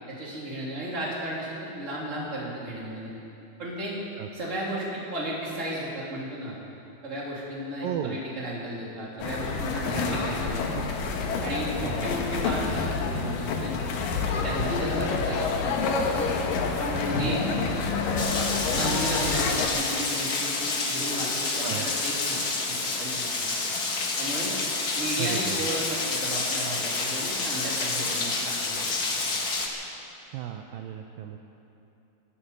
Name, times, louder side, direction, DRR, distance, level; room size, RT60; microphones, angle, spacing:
voice 1, 0.1-3.1 3.6-3.9 4.3-6.5 7.0-10.9 11.4-13.7 14.4-16.3 16.8-17.8 18.7-22.4 22.7-23.5 24.2-24.5 24.9-28.8, right 1 dB, 20° right, -5 dB, 3.0 m, -34 dB
voice 2, 7.8-8.2 11.8-12.1 21.6-21.9 25.2-25.7 30.3-31.4, right 10 dB, 80° right, 4 dB, 2.3 m, -34 dB
sound 1, 9.2-19.7, left 4 dB, 70° left, 2.7 m, -28 dB
Rain, 18.2-29.7, left 3 dB, 90° left, 0.8 m, -29 dB
25.0 x 8.5 x 6.8 m, 2.9 s
omnidirectional pair, 4.3 m